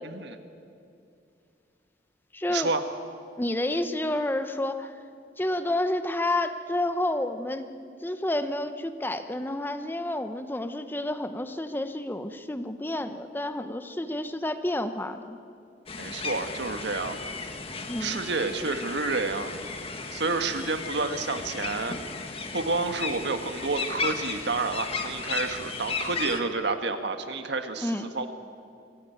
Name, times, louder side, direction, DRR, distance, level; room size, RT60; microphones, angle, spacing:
voice 1, 0.0-0.4 2.5-2.8 16.0-17.3 18.0-19.5 20.1-22.0 22.5-28.3, right 3 dB, 70° right, 7 dB, 1.5 m, -29 dB
voice 2, 2.3-2.7 3.4-4.9 5.4-7.7 8.0-15.4 17.9-18.2 27.8-28.1, left 1 dB, 10° left, 9 dB, 0.8 m, -30 dB
sound 1, 15.9-26.4, left 4 dB, 30° left, 1.5 m, -35 dB
24.5 x 16.0 x 9.1 m, 2.5 s
head